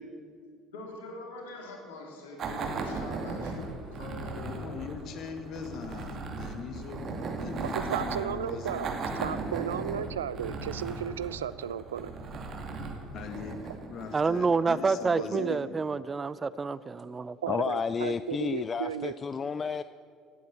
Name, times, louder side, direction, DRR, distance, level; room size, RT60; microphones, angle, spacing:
voice 1, 0.7-4.7, left 2 dB, 75° left, 1 dB, 3.4 m, -44 dB
sound 1, 2.4-14.6, right 3 dB, 45° right, 2.4 m, -37 dB
voice 2, 4.4-9.5 13.1-16.0, left 6 dB, 50° left, 6 dB, 2.0 m, -41 dB
voice 3, 7.7-12.1 15.2-15.6 17.4-19.1, right 9 dB, 80° right, 17 dB, 0.4 m, -34 dB
voice 4, 14.1-17.4, right 4 dB, 25° right, 17 dB, 0.5 m, -28 dB
voice 5, 17.5-19.8, left 5 dB, 30° left, 14 dB, 0.4 m, -31 dB
16.5 x 9.4 x 8.7 m, 2.4 s
figure-of-eight pair, 60°, 0 cm